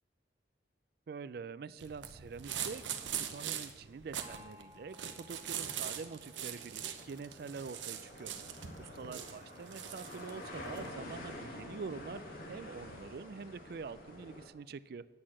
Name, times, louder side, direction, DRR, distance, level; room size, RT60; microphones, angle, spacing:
voice 1, 1.1-2.9 3.1-15.1, right 5 dB, 55° right, 17 dB, 0.3 m, -46 dB
sound 1, 1.8-10.9, right 9 dB, 85° right, 0.8 m, -42 dB
Gong, 4.2-7.7, left 1 dB, 20° right, 1.1 m, -60 dB
sound 2, 5.4-14.5, left 1 dB, 50° left, 1.5 m, -49 dB
9.5 x 6.6 x 7.3 m, 1.3 s
head